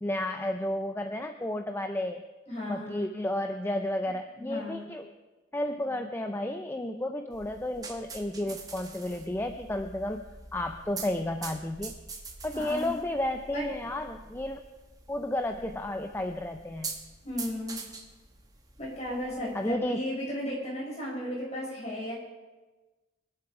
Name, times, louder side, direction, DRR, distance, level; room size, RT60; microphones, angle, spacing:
voice 1, 0.0-2.2 2.7-5.1 5.5-11.9 12.4-14.6 15.1-17.0 19.5-20.0, left 1 dB, 10° left, 6 dB, 0.4 m, -32 dB
voice 2, 2.5-3.1 4.3-4.8 12.5-12.9 13.5-13.7 17.2-17.8 18.8-22.1, left 1 dB, 35° left, -5 dB, 5.6 m, -35 dB
sound 1, 7.3-19.7, right 4 dB, 20° right, 1.1 m, -45 dB
23.0 x 7.9 x 4.9 m, 1.2 s
head